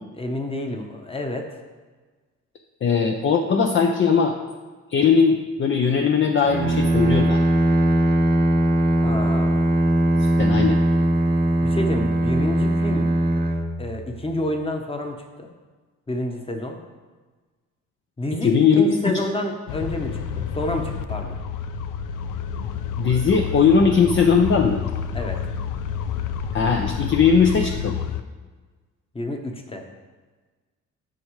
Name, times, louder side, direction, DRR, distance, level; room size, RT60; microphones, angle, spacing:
voice 1, 0.2-1.6 9.0-9.7 11.6-13.1 13.8-15.5 16.1-16.8 18.2-21.3 25.1-25.4 29.1-29.8, left 1 dB, 20° left, 4 dB, 1.1 m, -29 dB
voice 2, 2.8-4.3 4.9-7.4 10.1-10.8 18.4-19.2 23.0-24.8 26.5-28.0, left 6 dB, 40° left, 3 dB, 0.6 m, -19 dB
Bowed string instrument, 6.4-14.4, right 1 dB, 30° right, 1.0 m, -20 dB
sound 1, 19.7-28.2, left 7 dB, 85° left, 0.5 m, -29 dB
12.0 x 5.3 x 3.2 m, 1.4 s
cardioid pair, 90°, 30 cm